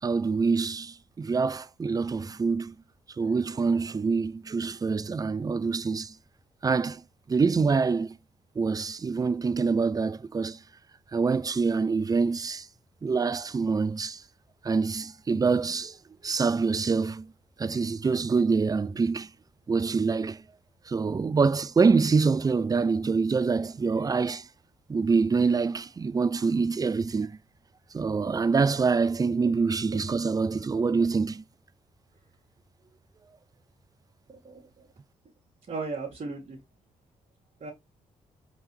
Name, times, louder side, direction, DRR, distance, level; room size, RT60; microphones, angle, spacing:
voice 1, 0.0-2.8 3.2-6.1 6.6-7.0 7.3-8.1 8.6-10.6 11.1-12.7 13.0-14.2 14.6-16.0 16.2-17.3 17.6-19.3 19.7-20.4 20.9-24.5 24.9-27.4 27.9-31.4, right 4 dB, 25° right, 0.4 m, -25 dB
voice 2, 34.3-34.9 35.7-36.6 37.6-37.7, right 3 dB, 50° right, 1.5 m, -36 dB
4.5 x 3.4 x 3.0 m
hypercardioid pair, 40°, 16 cm